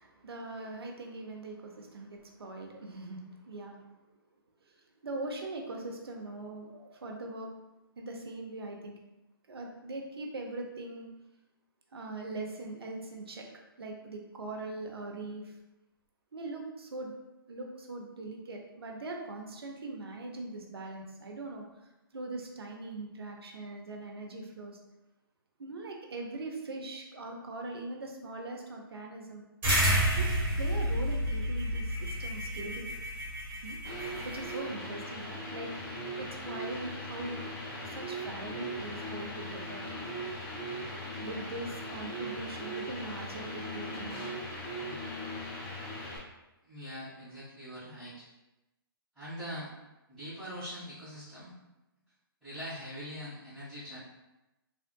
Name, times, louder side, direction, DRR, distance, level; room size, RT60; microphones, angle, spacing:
voice 1, 0.0-3.9 5.0-7.5 8.0-9.0 9.5-11.1 11.9-13.5 13.8-15.5 16.3-17.1 17.5-21.7 22.1-24.8 25.6-29.4 30.2-32.9 33.6-33.8 34.2-37.5 37.9-39.8 41.0-44.2, right 2 dB, 85° right, 1 dB, 0.7 m, -41 dB
sound 1, 29.6-34.5, equal, 15° right, 1.4 m, -30 dB
sound 2, 33.8-46.2, equal, 20° left, 0.8 m, -39 dB
voice 2, 46.6-48.2 49.1-49.7 50.1-51.5 52.4-54.0, equal, 5° left, -17 dB, 1.4 m, -42 dB
3.5 x 2.4 x 2.2 m, 0.98 s
hypercardioid pair, 145°, 13 cm